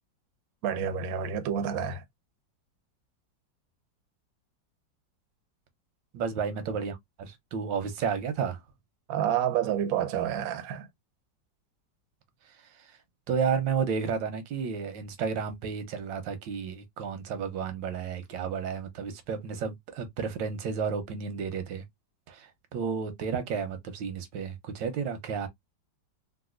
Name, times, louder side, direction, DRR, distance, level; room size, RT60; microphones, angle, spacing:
voice 1, 0.6-2.0 9.1-10.9, right 9 dB, 65° right, 0.9 m, -29 dB
voice 2, 6.1-8.6 12.5-13.0 13.3-21.8 22.3-25.5, right 6 dB, 90° right, 1.5 m, -32 dB
4.0 x 2.5 x 2.3 m
omnidirectional pair, 2.0 m